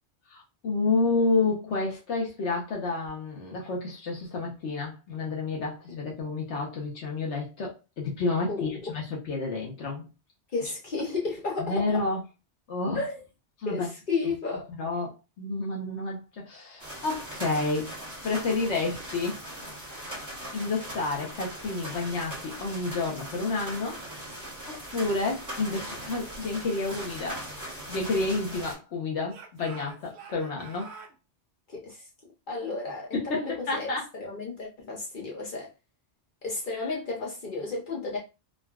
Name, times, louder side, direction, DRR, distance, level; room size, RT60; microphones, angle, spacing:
voice 1, 0.3-10.1 11.6-12.2 12.7-13.0 13.6-13.9 14.8-17.9 18.2-19.4 20.0-20.1 20.5-24.0 24.7-27.4 27.9-30.9 33.1-34.1, left 3 dB, 80° left, 1.1 m, -30 dB
voice 2, 8.5-8.9 10.5-11.7 12.9-13.2 13.7-14.7 31.7-32.1 32.5-35.7 36.4-38.2, left 3 dB, 50° left, 0.8 m, -33 dB
sound 1, 16.8-28.7, equal, 15° right, 1.0 m, -40 dB
Speech / Shout, 27.4-28.8 29.3-31.2, right 5 dB, 70° right, 0.9 m, -49 dB
3.7 x 2.2 x 2.2 m
omnidirectional pair, 1.2 m